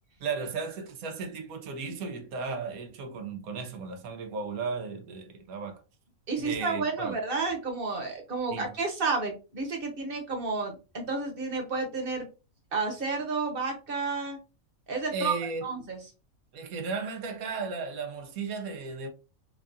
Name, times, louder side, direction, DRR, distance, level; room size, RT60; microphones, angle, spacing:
voice 1, 0.2-5.8 6.4-7.1 8.5-8.7 15.1-15.7 16.5-19.1, right 4 dB, 80° right, 1.2 m, -35 dB
voice 2, 6.3-12.3 12.7-14.4 14.9-15.3 15.6-16.0, right 4 dB, 45° right, 1.1 m, -31 dB
4.6 x 2.4 x 2.5 m
omnidirectional pair, 1.5 m